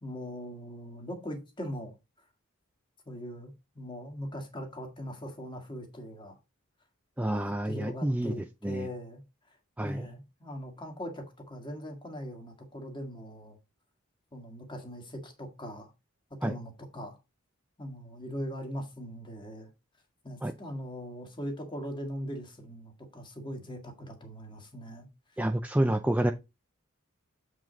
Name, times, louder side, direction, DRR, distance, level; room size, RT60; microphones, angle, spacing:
voice 1, 0.0-1.9 3.1-6.4 7.3-9.2 9.8-13.6 14.3-15.9 16.4-17.2 17.8-19.7 20.2-25.1, equal, 25° left, 1.8 m, -40 dB
voice 2, 7.2-8.3 8.6-8.9 9.8-10.1 16.4-16.6 20.4-20.5 25.4-26.3, right 1 dB, 5° right, 0.4 m, -28 dB
7.7 x 5.0 x 3.9 m
head